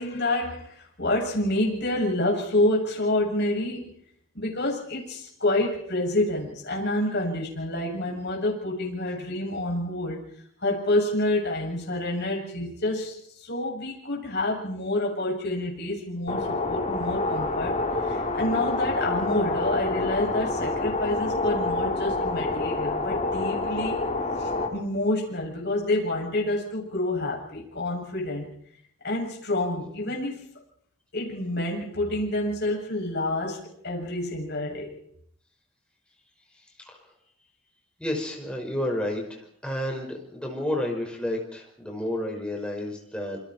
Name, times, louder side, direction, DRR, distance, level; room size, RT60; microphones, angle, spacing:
voice 1, 0.0-3.9 4.3-10.2 10.6-24.0 24.4-28.5 29.0-30.4 31.1-34.9, left 1 dB, 50° left, -1 dB, 7.6 m, -28 dB
sound 1, 16.3-24.7, left 2 dB, 30° left, 3.3 m, -27 dB
voice 2, 38.0-43.4, left 1 dB, 5° left, 0 dB, 5.3 m, -31 dB
28.0 x 26.0 x 4.5 m, 0.65 s
head